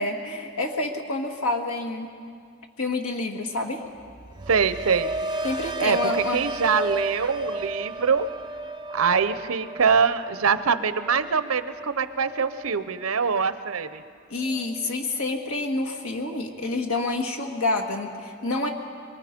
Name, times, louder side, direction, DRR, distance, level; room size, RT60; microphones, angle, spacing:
voice 1, 0.0-2.1 2.8-3.8 5.4-6.4 14.3-18.7, left 2 dB, 80° left, 2 dB, 1.7 m, -28 dB
sound 1, 4.0-14.1 14.4-14.9, right 2 dB, 20° right, 0.6 m, -34 dB
voice 2, 4.5-5.1 5.8-8.3 8.9-14.0, right 6 dB, 80° right, 12 dB, 0.8 m, -24 dB
24.5 x 23.5 x 5.2 m, 2.2 s
head